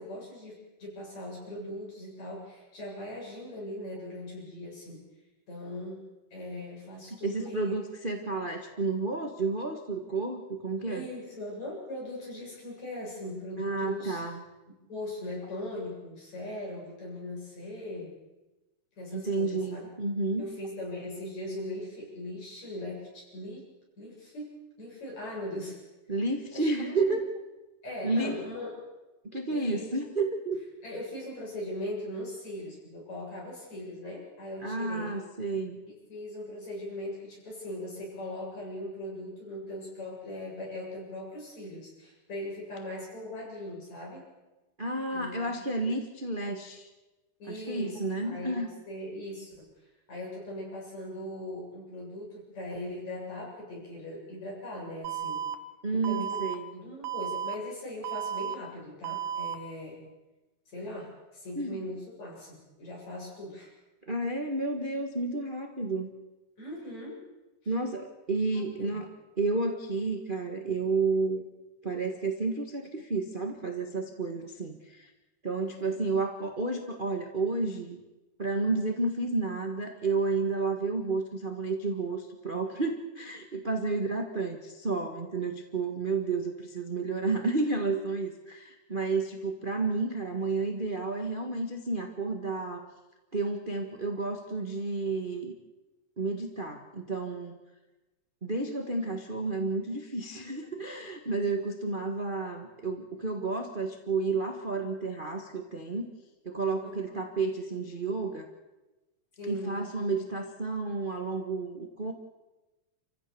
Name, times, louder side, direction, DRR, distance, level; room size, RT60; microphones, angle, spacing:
voice 1, 0.0-5.0 5.5-7.7 10.9-14.2 14.9-18.1 19.0-19.9 20.4-23.7 24.0-24.5 24.8-25.8 26.5-27.2 27.8-28.8 29.5-29.9 30.8-35.2 35.9-44.2 45.1-45.6 47.4-49.7 50.1-55.4 55.9-56.4 56.7-60.0 60.7-63.7 66.6-67.2 67.6-67.7 68.5-69.0 75.6-76.0 106.8-107.0 109.4-109.8, left 1 dB, 60° left, -3 dB, 9.1 m, -40 dB
voice 2, 7.2-11.0 13.6-14.4 19.1-20.5 26.1-27.3 28.0-28.4 29.3-30.6 34.6-35.8 44.8-46.9 47.5-48.7 55.8-56.7 61.5-61.8 64.1-66.1 67.6-69.1 69.4-71.5 71.8-75.1 75.4-78.0 78.4-92.9 93.3-95.5 96.2-97.6 98.4-106.1 106.4-108.5 109.5-112.1, right 3 dB, 25° right, 3 dB, 1.1 m, -31 dB
Alarm, 55.0-55.5 56.0-56.5 57.0-57.5 58.0-58.5 59.0-59.5, right 9 dB, 55° right, 1.8 m, -33 dB
29.0 x 15.5 x 7.0 m, 1.1 s
omnidirectional pair, 3.6 m